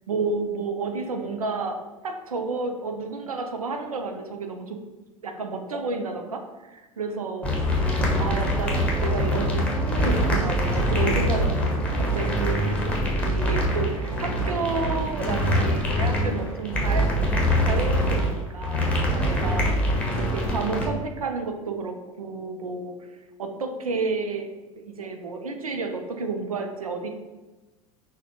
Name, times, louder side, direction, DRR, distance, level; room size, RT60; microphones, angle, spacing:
voice 1, 0.1-4.8 5.2-7.9 8.2-12.8 13.1-19.7 20.1-23.0 23.4-24.5 24.8-27.1, right 4 dB, 85° right, 5 dB, 0.5 m, -31 dB
sound 1, 7.4-20.8, equal, 5° left, 0.9 m, -24 dB
6.0 x 2.2 x 2.7 m, 1.2 s
figure-of-eight pair, 75°, 18 cm